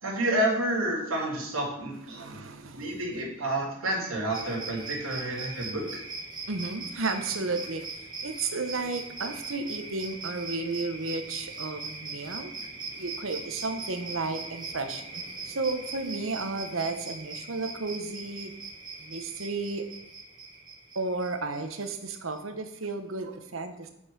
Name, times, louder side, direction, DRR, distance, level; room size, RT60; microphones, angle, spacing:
voice 1, 0.0-2.4 2.7-5.8, right 1 dB, 90° right, -2 dB, 3.0 m, -29 dB
voice 2, 2.1-3.0 6.5-7.9 8.2-12.5 13.0-18.5 19.0-19.8 20.9-23.9, right 3 dB, 70° right, 7 dB, 1.1 m, -33 dB
sound 1, 4.3-22.4, right 3 dB, 20° right, 1.4 m, -40 dB
8.3 x 5.5 x 6.2 m, 0.78 s
head